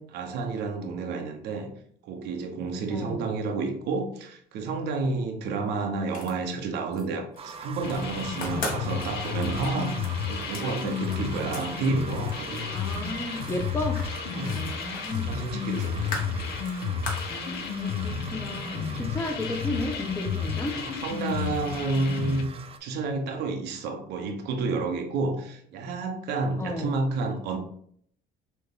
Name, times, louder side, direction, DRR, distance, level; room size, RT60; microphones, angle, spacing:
voice 1, 0.0-1.7 2.0-12.7 14.3-14.8 15.3-16.2 19.0-19.1 20.7-22.5 22.8-27.6, right 3 dB, 80° right, 4 dB, 0.9 m, -30 dB
voice 2, 2.9-3.2 12.7-14.0 14.3-15.4 17.3-20.8 26.6-26.9, left 2 dB, 15° left, 4 dB, 0.7 m, -34 dB
sound 1, 6.0-7.0 7.4-8.0 8.3-11.7 11.9-17.3, left 2 dB, 55° left, 1.3 m, -39 dB
sound 2, 7.4-22.8, right 6 dB, 35° right, 0.4 m, -42 dB
sound 3, 7.8-22.4, left 7 dB, 75° left, 0.6 m, -32 dB
6.1 x 2.3 x 3.5 m, 0.64 s
cardioid pair, 110°, 17 cm